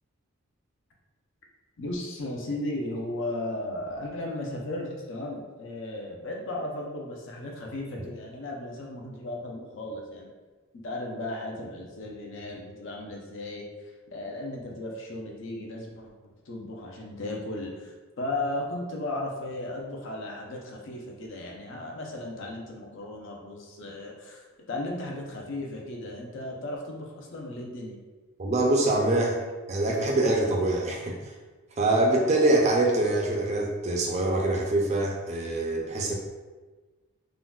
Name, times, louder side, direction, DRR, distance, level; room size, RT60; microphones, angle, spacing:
voice 1, 1.8-10.3 10.8-13.7 14.1-16.1 16.5-28.0, left 1 dB, 55° left, 0 dB, 0.5 m, -35 dB
voice 2, 28.4-29.4 29.7-31.2 31.8-36.1, right 2 dB, 30° right, 0 dB, 0.4 m, -24 dB
3.7 x 2.1 x 2.3 m, 1.3 s
head